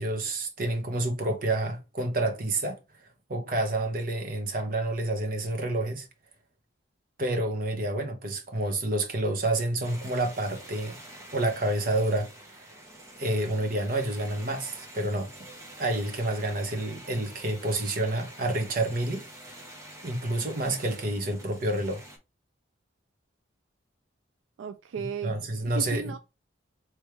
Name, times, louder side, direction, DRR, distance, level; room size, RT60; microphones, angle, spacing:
voice 1, 0.0-2.8 3.3-6.1 7.2-10.9 11.3-12.3 13.2-15.3 15.8-19.2 20.0-22.0 25.0-26.1, right 1 dB, 45° right, 1.0 m, -29 dB
recorrido-leo, 9.8-22.2, right 1 dB, 15° right, 0.9 m, -47 dB
voice 2, 24.6-25.4 25.7-26.2, right 6 dB, 75° right, 0.3 m, -35 dB
3.3 x 3.1 x 4.5 m
head